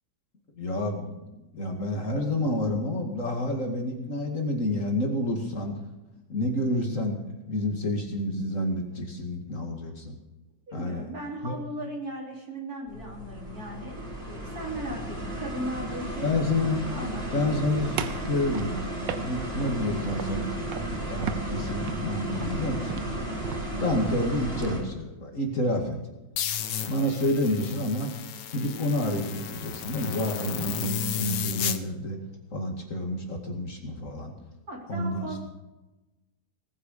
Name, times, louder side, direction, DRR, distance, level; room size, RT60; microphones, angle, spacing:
voice 1, 0.6-5.8 6.3-7.2 7.5-10.2 10.7-11.1 11.4-11.6 16.2-16.8 17.3-18.0 18.3-18.8 19.2-23.0 23.8-26.0 26.9-28.1 28.5-32.2 32.5-34.3 34.9-35.4, left 1 dB, 45° left, 2 dB, 2.6 m, -29 dB
voice 2, 10.7-16.3 16.9-17.4 34.7-35.4, right 1 dB, 50° right, -1 dB, 4.1 m, -37 dB
sound 1, 12.9-24.8, right 1 dB, 30° right, 3.6 m, -34 dB
sound 2, 18.0-19.8 20.1-20.4 20.7-21.0 21.2-24.8, right 8 dB, 80° right, 1.6 m, -36 dB
sound 3, 26.4-31.8, left 10 dB, 75° left, 1.6 m, -33 dB
19.5 x 9.6 x 6.7 m, 1.0 s
omnidirectional pair, 2.0 m